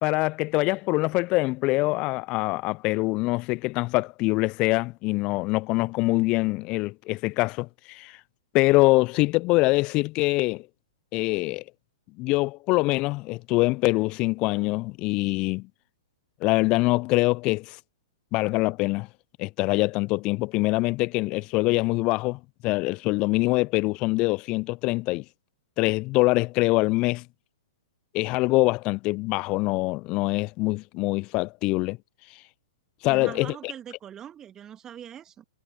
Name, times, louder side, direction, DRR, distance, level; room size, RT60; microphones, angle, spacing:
voice 1, 0.0-8.2 8.5-10.7 11.1-11.6 12.2-15.7 16.4-17.8 18.3-19.1 19.4-25.2 25.8-27.2 28.1-32.0 33.0-33.5, left 22 dB, 35° left, 0.6 m, -24 dB
voice 2, 33.1-35.4, right 9 dB, 20° right, 2.3 m, -42 dB
figure-of-eight pair, 110°, 3 cm